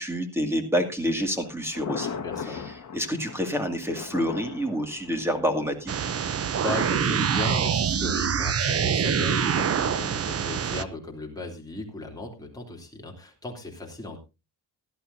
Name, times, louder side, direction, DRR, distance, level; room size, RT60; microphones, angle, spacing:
voice 1, 0.0-2.1 2.5-2.6 2.9-6.1, equal, 5° right, 5 dB, 2.2 m, -28 dB
Thunder, 1.0-7.0, left 6 dB, 40° left, 1.7 m, -39 dB
voice 2, 2.0-2.7 6.3-14.2, left 2 dB, 10° left, -1 dB, 3.1 m, -36 dB
sound 1, 5.9-10.8, right 7 dB, 35° right, 0.6 m, -25 dB
17.0 x 12.0 x 2.7 m, 0.28 s
wide cardioid pair, 170°, 40 cm